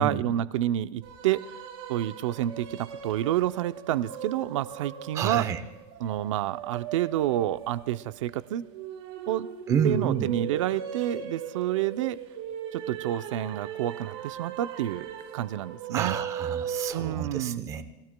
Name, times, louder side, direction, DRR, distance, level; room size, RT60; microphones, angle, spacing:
voice 1, 0.0-1.4 1.9-5.5 6.0-8.6 9.3-9.5 9.8-12.2 12.7-15.1 15.3-16.2 16.9-17.7, right 12 dB, 85° right, 13 dB, 0.6 m, -29 dB
sound 1, 1.0-16.9, right 8 dB, 60° right, 6.9 m, -38 dB
voice 2, 5.1-5.6 9.7-10.3 15.9-17.8, right 7 dB, 20° right, 11 dB, 0.8 m, -29 dB
29.5 x 18.0 x 2.2 m, 1.0 s
supercardioid pair, 175°, 16 cm